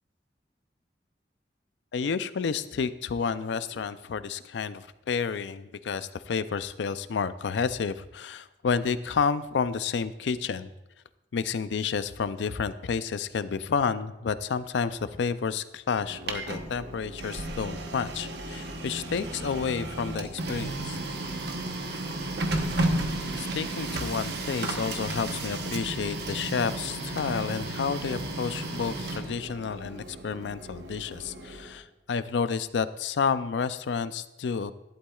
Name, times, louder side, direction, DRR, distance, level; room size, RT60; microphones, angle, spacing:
voice 1, 1.9-10.7 11.3-21.0 23.3-34.7, left 6 dB, 90° left, 14 dB, 0.4 m, -30 dB
Printer, 16.0-31.8, right 2 dB, 75° right, 1.0 m, -33 dB
11.5 x 11.0 x 2.3 m, 0.96 s
head